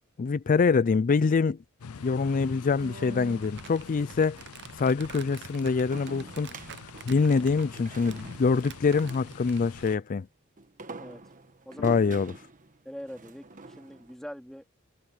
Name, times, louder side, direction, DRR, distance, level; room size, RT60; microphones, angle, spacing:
voice 1, 0.2-1.6 2.0-4.4 4.7-6.5 7.1-10.3 11.8-12.3, left 4 dB, 40° left, 0.4 m, -25 dB
sound 1, 1.8-10.0, left 5 dB, 85° left, 0.6 m, -45 dB
sound 2, 2.0-3.9 5.9-9.8 10.6-14.1, right 2 dB, 40° right, 1.2 m, -46 dB
Crumpling crinkling, 3.4-10.0, right 7 dB, 55° right, 0.7 m, -48 dB
voice 2, 11.6-12.0 12.8-14.6, equal, ahead, 3.4 m, -43 dB
head